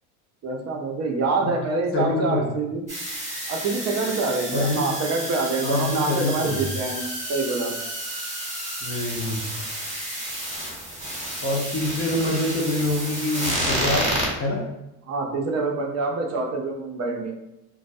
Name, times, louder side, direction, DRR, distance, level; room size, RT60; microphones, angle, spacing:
voice 1, 0.4-2.8 3.5-7.7 15.1-17.3, right 3 dB, 35° right, 1 dB, 0.6 m, -26 dB
voice 2, 1.9-2.5 4.5-4.9 5.6-6.6 8.8-9.5 11.4-14.1 14.4-14.6, left 1 dB, 30° left, -2 dB, 0.6 m, -25 dB
sound 1, 2.9-14.3, right 1 dB, 15° right, 1.0 m, -31 dB
2.2 x 2.1 x 2.6 m, 0.94 s
hypercardioid pair, 75°, 44 cm